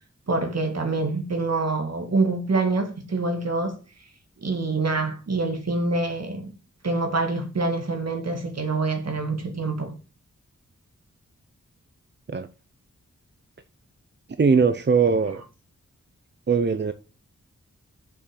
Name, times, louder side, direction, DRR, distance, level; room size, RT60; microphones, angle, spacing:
voice 1, 0.3-3.8 4.4-6.5 6.8-9.9, right 3 dB, 60° right, 2.1 m, -26 dB
voice 2, 14.4-15.4 16.5-16.9, right 5 dB, 40° right, 0.6 m, -20 dB
7.1 x 5.7 x 6.8 m
wide cardioid pair, 110°, 29 cm